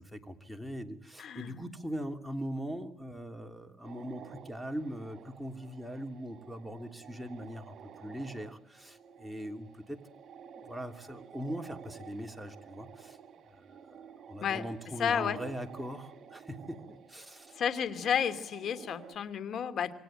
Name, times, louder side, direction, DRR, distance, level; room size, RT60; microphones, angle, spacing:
voice 1, 0.0-10.0 10.6-13.2 13.5-13.6 14.3-17.5, equal, ahead, 4 dB, 3.1 m, -41 dB
voice 2, 1.2-1.6 14.4-14.6 15.0-15.4 17.5-19.9, left 8 dB, 65° left, 12 dB, 2.6 m, -31 dB
sound 1, 3.8-19.2, right 7 dB, 60° right, 3.0 m, -52 dB
27.5 x 23.5 x 9.0 m, 0.67 s
cardioid pair, 90°, 0 cm